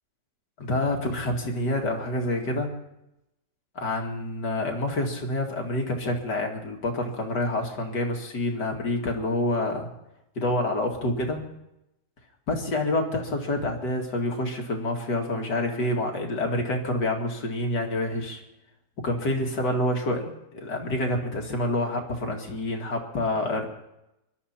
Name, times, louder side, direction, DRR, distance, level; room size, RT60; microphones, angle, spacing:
voice 1, 0.6-2.7 3.8-9.9 10.4-11.4 12.5-18.4 19.0-23.7, left 1 dB, 80° left, 2 dB, 2.8 m, -27 dB
24.5 x 12.5 x 4.4 m, 0.89 s
omnidirectional pair, 1.8 m